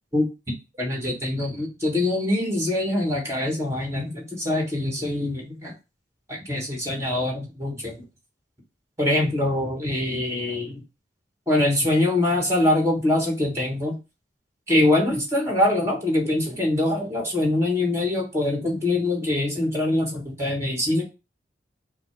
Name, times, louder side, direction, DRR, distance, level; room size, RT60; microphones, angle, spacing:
voice 1, 0.8-5.7 6.3-7.9 9.0-10.8 11.5-14.0 14.7-21.0, left 1 dB, 15° right, 0 dB, 1.5 m, -24 dB
5.2 x 2.1 x 4.6 m, 0.28 s
head